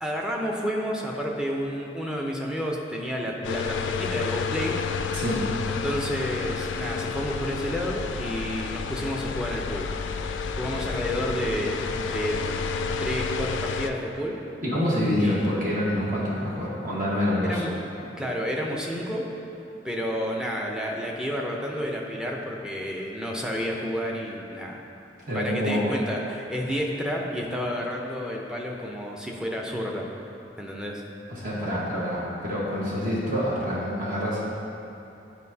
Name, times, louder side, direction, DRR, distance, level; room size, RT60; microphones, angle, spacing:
voice 1, 0.0-4.8 5.7-9.9 10.6-12.6 13.0-14.4 15.2-15.7 17.4-17.7 18.2-19.3 19.8-24.8 25.3-30.1 30.6-31.0, equal, 5° right, -2 dB, 0.6 m, -30 dB
sound 1, 3.4-13.9, left 5 dB, 90° left, 0.3 m, -30 dB
voice 2, 14.6-17.6 25.3-25.9 31.3-34.4, left 1 dB, 45° right, -7 dB, 1.4 m, -26 dB
9.7 x 4.6 x 2.8 m, 2.9 s
head